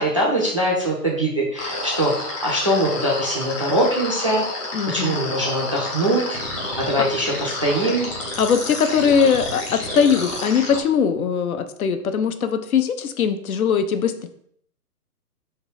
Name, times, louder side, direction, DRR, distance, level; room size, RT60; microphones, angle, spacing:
voice 1, 0.0-4.4 4.9-6.4 6.8-8.1, right 1 dB, 25° right, -5 dB, 0.4 m, -22 dB
sound 1, 1.6-10.8, left 2 dB, 20° left, 0.6 m, -30 dB
voice 2, 4.7-5.2 8.4-14.3, left 7 dB, 60° left, 8 dB, 0.7 m, -20 dB
3.6 x 2.7 x 4.6 m, 0.65 s
hypercardioid pair, 140°, 48 cm